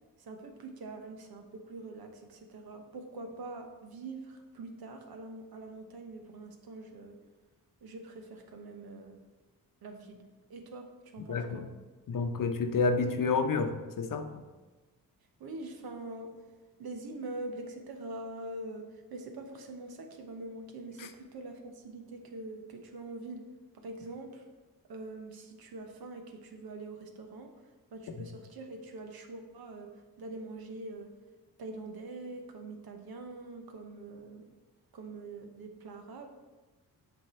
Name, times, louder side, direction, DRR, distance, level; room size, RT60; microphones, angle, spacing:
voice 1, 0.2-7.2 7.8-9.2 9.8-11.6 15.4-16.3 16.8-23.4 23.7-24.4 24.9-27.5 27.9-29.9 30.2-31.1 31.6-34.4 34.9-36.3, right 2 dB, 75° right, 4 dB, 1.0 m, -44 dB
voice 2, 11.3-11.6 12.1-14.4 21.0-21.1, left 4 dB, 60° left, 7 dB, 0.8 m, -29 dB
7.6 x 4.5 x 4.3 m, 1.2 s
cardioid pair, 55°, 37 cm